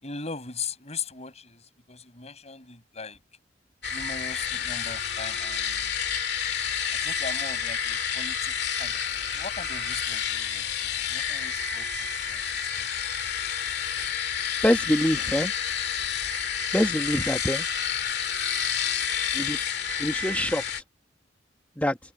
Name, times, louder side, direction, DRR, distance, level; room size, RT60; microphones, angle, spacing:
voice 1, 0.0-1.6 1.9-3.2 3.9-5.9 7.0-8.5 8.8-12.4 12.8-12.9 16.2-16.3, left 5 dB, 40° left, 6.1 m, -39 dB
sound 1, 3.8-20.8, left 7 dB, 65° left, 2.3 m, -29 dB
voice 2, 14.6-15.5 16.7-17.6 19.3-19.6 20.0-20.6 21.8-22.0, equal, 10° left, 1.7 m, -25 dB
head